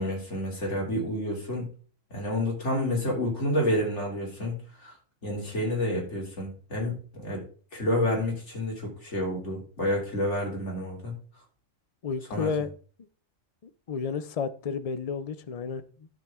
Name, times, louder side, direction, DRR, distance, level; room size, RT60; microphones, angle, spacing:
voice 1, 0.0-1.7 2.1-4.9 5.2-7.5 7.7-11.2 12.3-12.5, left 1 dB, 60° left, 3.6 m, -29 dB
voice 2, 12.0-12.7 13.6-16.1, left 5 dB, 40° left, 0.6 m, -32 dB
11.5 x 6.6 x 3.7 m
omnidirectional pair, 1.3 m